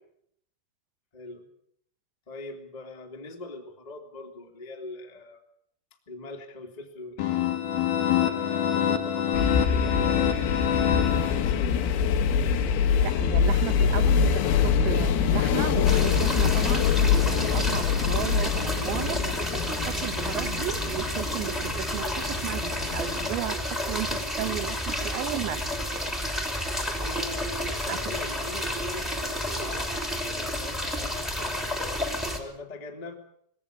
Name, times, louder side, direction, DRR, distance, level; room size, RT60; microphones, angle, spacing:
voice 1, 1.1-1.5 2.3-5.4 6.0-7.6 8.2-12.4 26.9-33.1, left 2 dB, 20° left, 2 dB, 1.1 m, -42 dB
sound 1, 7.2-11.9, left 9 dB, 65° left, 2.4 m, -26 dB
sound 2, 9.3-23.3, left 7 dB, 80° left, 4.0 m, -25 dB
voice 2, 13.0-16.9 17.3-19.2 19.6-25.7 27.9-28.0, right 13 dB, 70° right, 11 dB, 3.3 m, -34 dB
sound 3, 15.8-32.4, equal, ahead, 1.4 m, -31 dB
20.5 x 17.5 x 8.8 m, 0.71 s
omnidirectional pair, 6.0 m